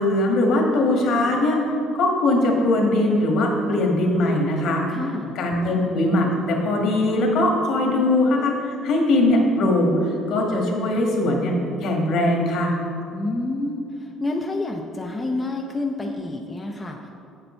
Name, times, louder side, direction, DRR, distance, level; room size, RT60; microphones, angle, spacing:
voice 1, 0.0-1.6 1.9-4.8 5.3-12.7, left 1 dB, 60° left, 1 dB, 1.6 m, -21 dB
voice 2, 4.9-5.4 13.1-17.1, left 2 dB, 15° left, 1 dB, 0.6 m, -28 dB
7.7 x 6.9 x 4.4 m, 2.6 s
cardioid pair, 125°, 0 cm